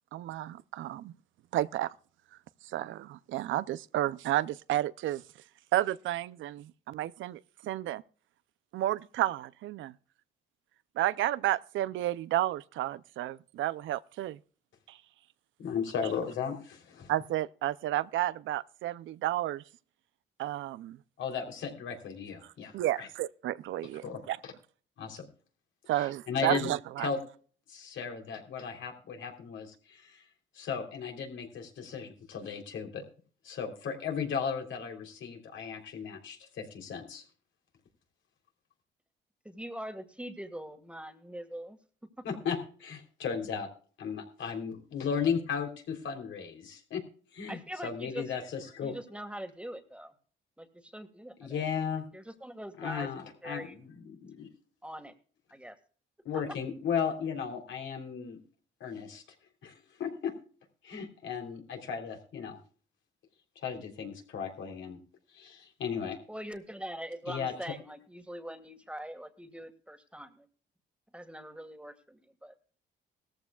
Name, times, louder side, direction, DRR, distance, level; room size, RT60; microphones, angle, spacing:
voice 1, 0.1-1.1 1.5-1.9 2.7-5.2 5.7-8.0 8.7-9.9 11.0-14.4 14.9-15.0 17.1-19.6 20.4-21.0 22.7-24.4 25.9-27.1, right 14 dB, 80° right, 0.5 m, -31 dB
voice 2, 15.6-17.1 21.2-23.1 24.0-24.5 25.0-25.3 26.0-26.7 27.0-27.2 27.7-30.2 30.5-33.0 33.4-37.2 42.2-43.7 44.0-47.0 47.3-49.0 51.4-52.0 52.8-54.5 56.2-58.4 58.8-59.2 59.6-59.7 60.0-60.3 60.8-62.6 63.6-65.0 65.3-66.2 67.3-67.5, left 6 dB, 75° left, 3.4 m, -35 dB
voice 3, 39.5-41.8 42.2-42.3 47.5-48.3 48.8-50.1 50.6-51.7 52.1-53.9 54.8-55.1 55.5-55.8 56.3-56.4 66.3-70.5 71.1-72.5, right 1 dB, 5° right, 1.8 m, -43 dB
17.5 x 14.0 x 2.4 m
cardioid pair, 90°, 20 cm